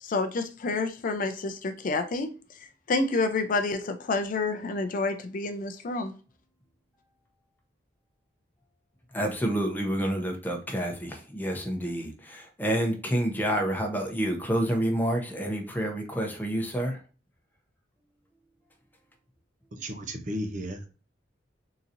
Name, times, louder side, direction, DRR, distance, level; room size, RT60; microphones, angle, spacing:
voice 1, 0.0-6.1, left 3 dB, 45° left, 0.4 m, -29 dB
voice 2, 9.1-17.0, right 1 dB, 10° left, 0.8 m, -28 dB
voice 3, 19.7-20.9, equal, 45° right, 0.7 m, -34 dB
3.9 x 2.8 x 2.5 m
head